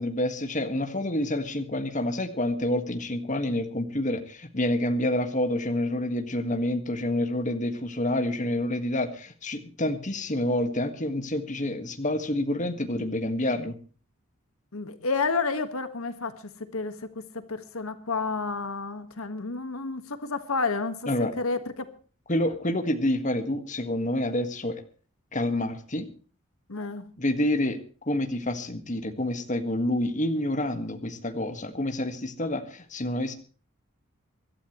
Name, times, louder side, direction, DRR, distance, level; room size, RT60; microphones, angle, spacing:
voice 1, 0.0-13.8 21.1-21.3 22.3-24.8 25.3-26.1 27.2-27.8 28.1-33.3, left 1 dB, 35° left, 6 dB, 1.7 m, -28 dB
voice 2, 14.7-21.9 26.7-27.1, left 4 dB, 80° left, 9 dB, 1.7 m, -31 dB
25.0 x 12.5 x 3.1 m, 0.39 s
head